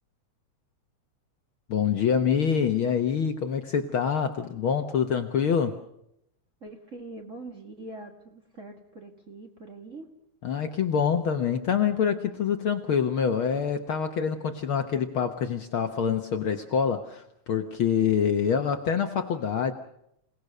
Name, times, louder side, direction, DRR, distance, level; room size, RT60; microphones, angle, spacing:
voice 1, 1.7-5.7 10.4-19.7, left 7 dB, 60° left, 7 dB, 1.4 m, -26 dB
voice 2, 6.6-10.1, right 2 dB, 30° right, 3 dB, 1.9 m, -43 dB
27.5 x 18.0 x 6.6 m, 0.78 s
omnidirectional pair, 3.4 m